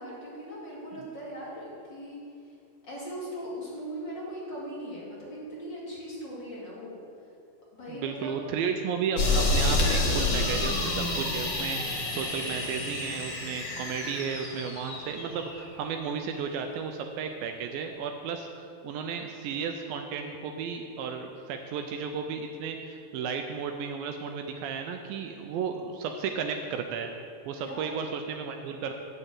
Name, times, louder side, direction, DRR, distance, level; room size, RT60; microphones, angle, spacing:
voice 1, 0.0-2.2 2.8-7.0 7.7-8.4 27.6-28.0, equal, 30° left, -7 dB, 2.6 m, -39 dB
voice 2, 7.9-27.1 27.5-28.9, right 6 dB, 80° right, 5 dB, 2.1 m, -34 dB
sound 1, 9.2-15.6, left 2 dB, 80° left, 1.1 m, -29 dB
8.2 x 7.0 x 7.3 m, 2.5 s
omnidirectional pair, 4.5 m